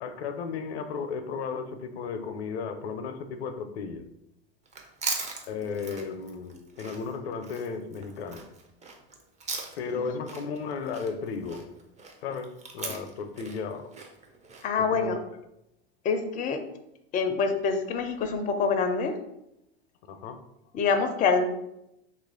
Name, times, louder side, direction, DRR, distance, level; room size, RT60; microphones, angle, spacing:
voice 1, 0.0-4.1 5.5-8.5 9.8-11.7 12.2-13.9 14.8-15.2 20.1-20.4, left 5 dB, 80° left, 9 dB, 0.5 m, -34 dB
Chewing mastication, 4.6-10.0 10.3-14.7, right 4 dB, 20° right, 0.6 m, -39 dB
voice 2, 14.6-15.2 16.0-16.6 17.1-19.2 20.7-21.4, left 5 dB, 25° left, 6 dB, 0.4 m, -25 dB
2.9 x 2.4 x 3.6 m, 0.83 s
hypercardioid pair, 100°, 32 cm